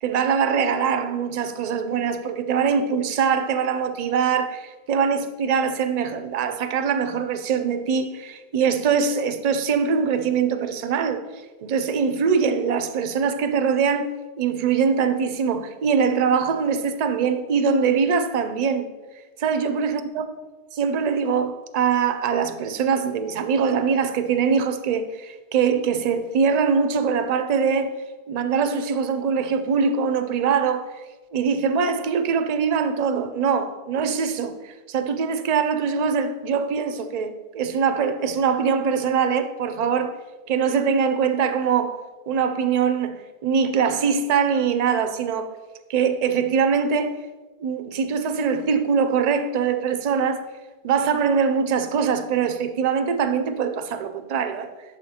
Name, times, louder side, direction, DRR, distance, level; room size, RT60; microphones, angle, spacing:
voice 1, 0.0-11.2 11.6-18.9 19.4-20.2 20.7-27.9 28.3-31.0 31.3-40.1 40.5-42.0 42.3-45.5 45.9-47.2 47.6-50.5 50.8-54.7, right 6 dB, 55° right, 0.5 m, -23 dB
11.5 x 4.3 x 2.8 m
omnidirectional pair, 1.1 m